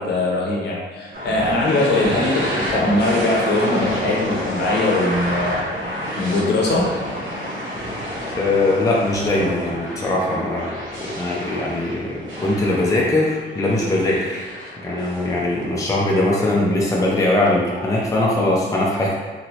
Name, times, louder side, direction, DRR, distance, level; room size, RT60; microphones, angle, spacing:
voice 1, 0.0-5.6 6.2-6.9, left 2 dB, 60° left, -3 dB, 0.8 m, -21 dB
sound 1, 1.1-16.0, equal, 80° right, 1.0 m, -29 dB
voice 2, 8.4-14.5 14.8-19.1, left 2 dB, 15° left, -4 dB, 0.5 m, -21 dB
3.0 x 2.8 x 2.8 m, 1.4 s
cardioid pair, 120°, 20 cm